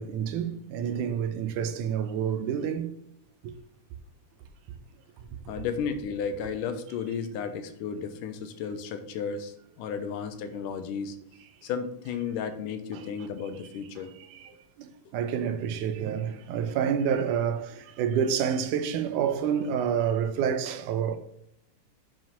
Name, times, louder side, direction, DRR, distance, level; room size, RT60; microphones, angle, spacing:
voice 1, 0.0-2.9 3.4-3.5 12.9-13.0 13.9-14.0 14.3-14.5 14.8-21.2, right 8 dB, 80° right, 2.2 m, -28 dB
voice 2, 5.5-11.2 11.6-14.1, left 6 dB, 90° left, 2.5 m, -33 dB
7.7 x 5.1 x 5.7 m
omnidirectional pair, 3.6 m